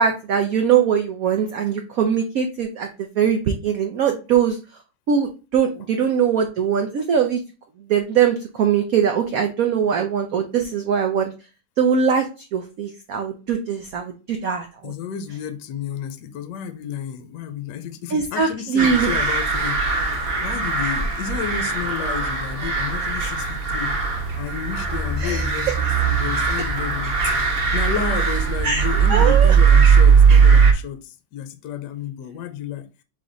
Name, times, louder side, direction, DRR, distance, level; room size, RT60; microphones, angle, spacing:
voice 1, 0.0-4.6 5.1-7.4 7.9-11.3 11.8-14.9 18.1-19.1 25.2-25.5 28.6-29.6, right 7 dB, 80° right, 0.7 m, -21 dB
voice 2, 14.8-19.9 20.4-24.0 24.4-27.4 27.7-32.9, left 8 dB, 70° left, 1.1 m, -31 dB
sound 1, 18.8-30.7, right 6 dB, 55° right, 1.1 m, -19 dB
3.9 x 3.3 x 3.9 m
omnidirectional pair, 2.1 m